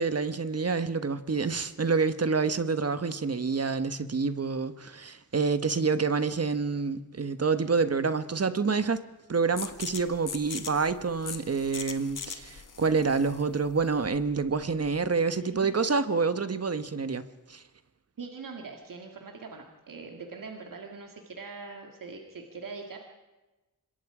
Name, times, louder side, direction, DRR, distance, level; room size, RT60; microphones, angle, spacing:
voice 1, 0.0-9.0 9.3-17.2 17.5-17.6, right 4 dB, 50° right, 12 dB, 1.3 m, -27 dB
sound 1, 9.6-15.1, left 6 dB, 70° left, 1.6 m, -41 dB
voice 2, 18.2-23.0, right 4 dB, 80° right, 3 dB, 2.2 m, -42 dB
26.0 x 21.5 x 5.0 m, 1.1 s
wide cardioid pair, 85°, 32 cm